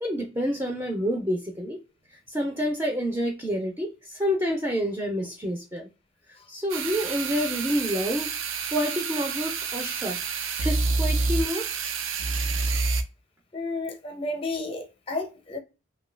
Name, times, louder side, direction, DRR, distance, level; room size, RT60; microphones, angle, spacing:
voice 1, 0.0-1.8 2.3-5.9 6.5-8.3 8.7-10.2 10.6-11.7, equal, 15° right, 0.5 m, -28 dB
sound 1, 6.7-13.0, right 4 dB, 80° right, 0.5 m, -28 dB
voice 2, 13.5-15.6, left 2 dB, 30° left, 0.6 m, -32 dB
2.7 x 2.2 x 3.2 m
head